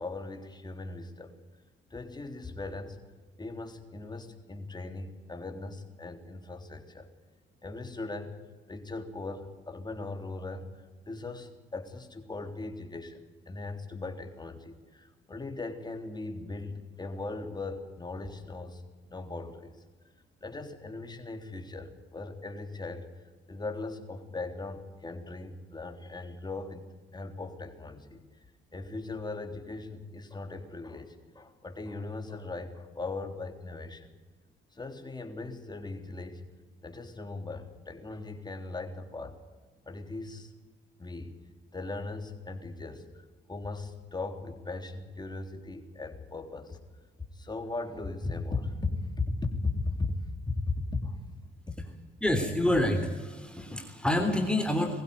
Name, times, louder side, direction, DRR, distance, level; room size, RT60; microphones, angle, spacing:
voice 1, 0.0-1.3 1.9-3.0 3.4-7.1 7.6-8.4 8.7-10.7 11.1-18.8 19.1-19.7 20.4-23.1 23.5-26.9 27.1-28.2 28.7-34.1 34.7-36.4 36.8-39.4 39.8-40.5 41.0-41.3 41.7-46.8 47.3-50.2 50.5-51.2 51.7-51.9, left 3 dB, 20° left, 5 dB, 3.4 m, -38 dB
voice 2, 52.2-55.0, left 1 dB, 5° left, 4 dB, 3.4 m, -27 dB
21.5 x 15.5 x 9.6 m, 1.3 s
cardioid pair, 90°, 20 cm